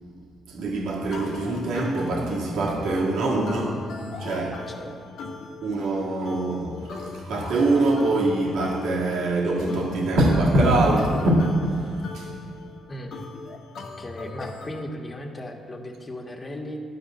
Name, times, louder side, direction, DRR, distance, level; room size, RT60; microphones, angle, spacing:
voice 1, 0.5-3.9 4.2-4.6 5.6-12.3, right 2 dB, 75° right, -3 dB, 1.8 m, -23 dB
sound 1, 1.1-14.8, left 4 dB, 70° left, 0.9 m, -40 dB
voice 2, 4.5-4.9 12.9-13.2 13.8-16.8, left 1 dB, 30° left, 2 dB, 1.4 m, -37 dB
11.0 x 5.1 x 7.4 m, 2.2 s
supercardioid pair, 55°, 0 cm